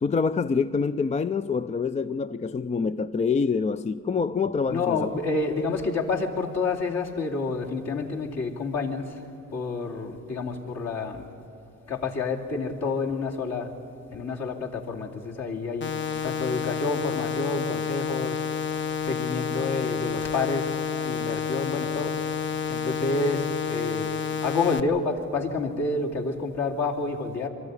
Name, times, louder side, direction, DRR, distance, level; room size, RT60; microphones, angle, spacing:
voice 1, 0.0-5.1, left 5 dB, 25° left, 0.5 m, -26 dB
voice 2, 4.7-9.1 9.5-11.3 11.9-13.7 14.1-15.9 16.2-18.4 19.0-20.7 21.0-22.1 22.7-24.1 24.4-27.5, left 3 dB, 60° left, 2.8 m, -28 dB
sound 1, 15.8-24.8, left 7 dB, 40° left, 0.9 m, -30 dB
23.5 x 13.5 x 9.7 m
cardioid pair, 90°, 30 cm